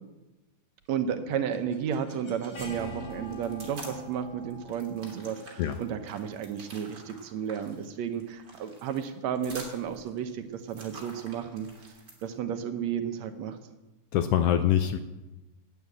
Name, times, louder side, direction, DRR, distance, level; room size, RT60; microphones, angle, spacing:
voice 1, 0.9-11.7 12.2-13.6, right 8 dB, 70° right, 8 dB, 2.1 m, -33 dB
sound 1, 1.1-7.0, equal, 55° left, 3.9 m, -45 dB
sound 2, 3.1-4.1 4.5-12.3, right 2 dB, 35° right, 3.2 m, -48 dB
voice 2, 14.1-15.0, left 10 dB, 85° left, 9 dB, 1.4 m, -24 dB
11.5 x 9.2 x 8.5 m, 1.1 s
omnidirectional pair, 3.4 m